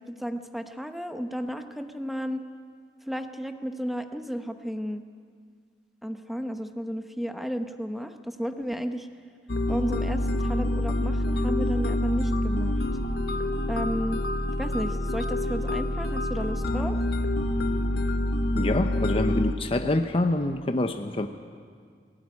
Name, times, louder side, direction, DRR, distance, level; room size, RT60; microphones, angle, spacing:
voice 1, 0.1-2.4 3.1-5.0 6.0-9.1 9.7-12.8 13.7-14.3 14.6-17.0, equal, ahead, 7 dB, 1.0 m, -33 dB
sound 1, 9.5-19.5, left 1 dB, 65° left, 1.3 m, -27 dB
voice 2, 18.5-21.3, left 2 dB, 35° left, 7 dB, 0.7 m, -26 dB
19.0 x 17.0 x 9.6 m, 2.1 s
head